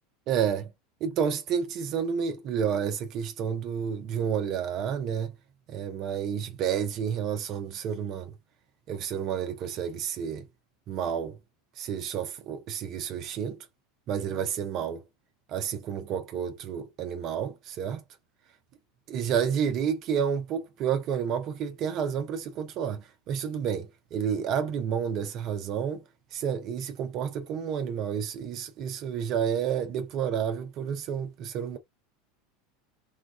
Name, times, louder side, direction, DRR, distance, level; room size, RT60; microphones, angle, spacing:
voice 1, 0.3-0.7 1.0-5.4 5.7-8.3 8.9-10.4 10.9-11.4 11.8-13.7 14.1-15.0 15.5-18.0 19.1-26.0 26.3-31.8, right 8 dB, 50° right, 0.6 m, -30 dB
3.1 x 2.3 x 2.3 m
hypercardioid pair, 95°, 0 cm